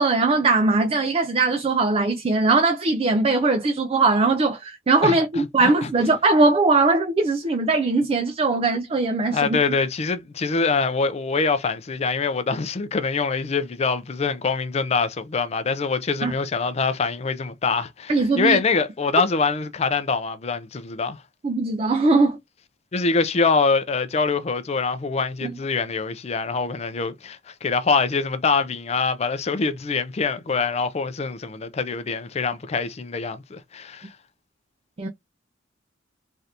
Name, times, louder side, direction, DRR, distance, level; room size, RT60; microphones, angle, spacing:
voice 1, 0.0-9.6 16.2-16.3 18.1-18.6 21.4-22.4 25.4-25.5 35.0-35.1, right 3 dB, 30° right, 0.4 m, -20 dB
voice 2, 5.0-5.9 9.3-21.2 22.9-34.1, left 4 dB, 35° left, 0.4 m, -24 dB
3.2 x 2.5 x 2.8 m
head